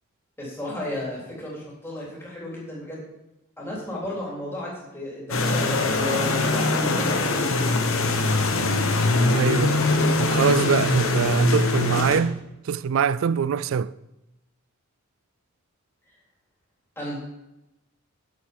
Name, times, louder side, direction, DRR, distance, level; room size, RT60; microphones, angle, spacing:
voice 1, 0.4-3.0 3.6-7.5 17.0-17.2, left 1 dB, 10° left, 3.3 m, -34 dB
sound 1, 5.3-12.2, left 2 dB, 70° left, 1.1 m, -22 dB
voice 2, 9.3-9.8 10.2-12.4 12.7-13.9, right 6 dB, 65° right, 0.3 m, -23 dB
8.9 x 7.5 x 5.2 m
head